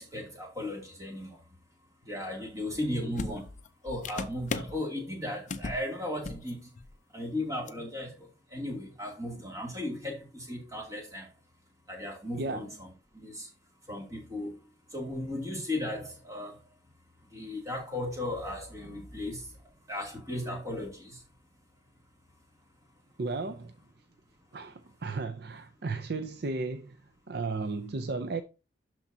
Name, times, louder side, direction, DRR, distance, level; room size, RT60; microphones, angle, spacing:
voice 1, 0.0-1.4 2.0-3.5 3.8-6.7 7.1-11.3 11.9-13.5 13.9-14.6 14.9-16.7 17.3-21.2, left 1 dB, 20° right, 2.6 m, -36 dB
sound 1, 2.7-2.8 3.2-4.8 5.5-5.8 6.1-6.5 6.8-6.9 7.7-7.8, left 3 dB, 40° left, 0.5 m, -37 dB
voice 2, 23.2-23.8 24.5-27.0 27.3-28.4, right 3 dB, 55° right, 0.5 m, -34 dB
12.0 x 4.5 x 2.8 m
head